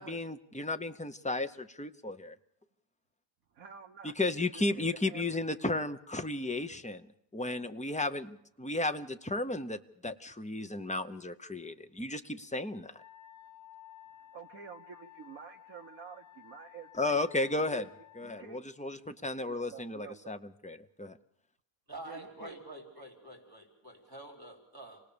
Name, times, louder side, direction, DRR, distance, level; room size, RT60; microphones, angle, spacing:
voice 1, 0.0-2.3 4.2-7.1 7.3-13.0 17.0-17.8 18.2-21.2, left 2 dB, 10° left, 9 dB, 0.4 m, -34 dB
voice 2, 3.5-4.2 4.5-5.6 14.3-17.9 18.2-18.6 19.5-20.3 22.0-22.6 23.0-23.1, right 6 dB, 70° right, 0 dB, 1.6 m, -50 dB
Wind instrument woodwind instrument, 12.9-18.5, left 12 dB, 80° left, 2.4 m, -55 dB
voice 3, 21.9-25.0, right 1 dB, 15° right, 0 dB, 4.2 m, -47 dB
27.5 x 18.5 x 6.9 m, 0.71 s
omnidirectional pair, 1.5 m